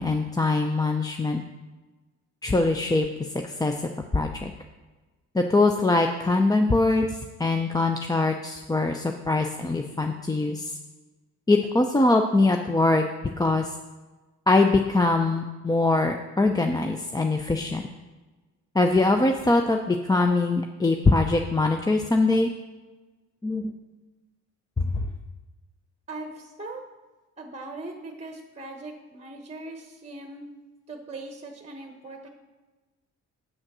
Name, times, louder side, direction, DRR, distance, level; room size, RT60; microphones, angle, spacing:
voice 1, 0.0-1.4 2.4-3.7 4.1-4.5 5.3-10.8 11.5-13.0 13.4-13.7 14.5-17.8 18.7-22.5 23.4-23.7 24.8-25.0, left 2 dB, 15° left, 4 dB, 0.5 m, -23 dB
voice 2, 26.1-26.8 27.4-30.4 30.9-32.3, right 2 dB, 20° right, 3 dB, 1.0 m, -40 dB
7.7 x 6.3 x 6.1 m, 1.2 s
cardioid pair, 90°, 30 cm